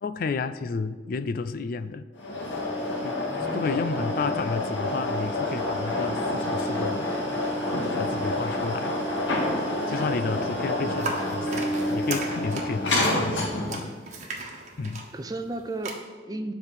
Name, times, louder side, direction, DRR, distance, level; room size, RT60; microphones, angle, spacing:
voice 1, 0.0-2.0 3.0-3.2 3.5-7.1 7.7-9.0 9.9-13.9 14.2-14.3 14.8-15.1, left 4 dB, 50° left, 13 dB, 0.3 m, -31 dB
sound 1, 2.2-13.9, left 1 dB, 85° left, 2.1 m, -28 dB
voice 2, 3.3-4.0 10.2-10.4 15.1-16.5, right 2 dB, 20° right, 7 dB, 0.5 m, -35 dB
sound 2, 11.0-15.9, right 3 dB, 40° right, 1.2 m, -37 dB
9.8 x 4.3 x 6.9 m, 1.5 s
head